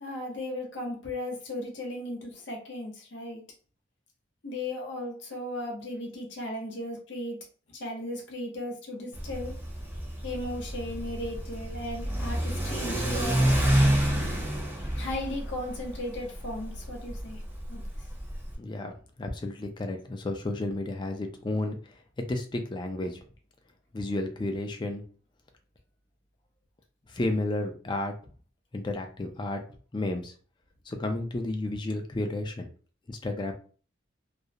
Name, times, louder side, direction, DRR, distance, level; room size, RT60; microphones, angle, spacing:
voice 1, 0.0-3.4 4.4-7.4 7.7-9.6 10.2-13.6 14.9-17.4 17.7-17.8, left 1 dB, 65° left, 1 dB, 0.8 m, -36 dB
Car / Accelerating revving vroom, 9.1-18.5, right 1 dB, 10° right, 0.7 m, -28 dB
voice 2, 18.6-21.8 22.3-23.2 23.9-25.0 27.1-28.1 28.7-29.6 29.9-30.3 30.9-32.7 33.1-33.5, left 2 dB, 25° left, 5 dB, 0.4 m, -32 dB
2.4 x 2.0 x 2.7 m, 0.39 s
head